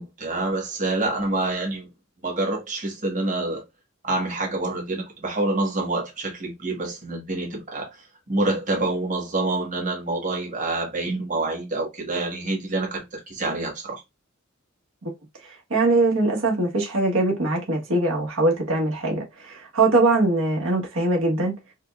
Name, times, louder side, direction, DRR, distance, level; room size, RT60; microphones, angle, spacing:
voice 1, 0.0-1.9 2.2-3.6 4.0-7.9 8.3-14.0, right 2 dB, 40° right, 1.3 m, -27 dB
voice 2, 15.4-21.5, right 2 dB, 85° right, 1.2 m, -22 dB
5.0 x 2.2 x 2.3 m
head